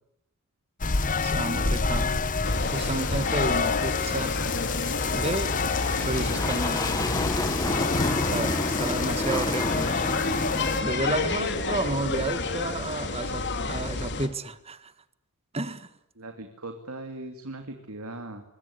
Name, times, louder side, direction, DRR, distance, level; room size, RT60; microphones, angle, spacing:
sound 1, 0.8-10.8, left 4 dB, 35° left, 1.0 m, -28 dB
voice 1, 1.2-2.1 2.7-4.4 5.1-5.6 6.0-6.9 8.3-9.9 10.8-14.9 15.5-15.9, right 2 dB, 25° right, 13 dB, 1.6 m, -31 dB
sound 2, 2.4-14.3, left 2 dB, 55° left, 2.9 m, -30 dB
sound 3, 5.6-12.1, left 1 dB, 15° left, 1.6 m, -31 dB
voice 2, 16.1-18.5, right 2 dB, 75° right, 6 dB, 2.8 m, -39 dB
25.0 x 22.5 x 9.6 m, 0.81 s
head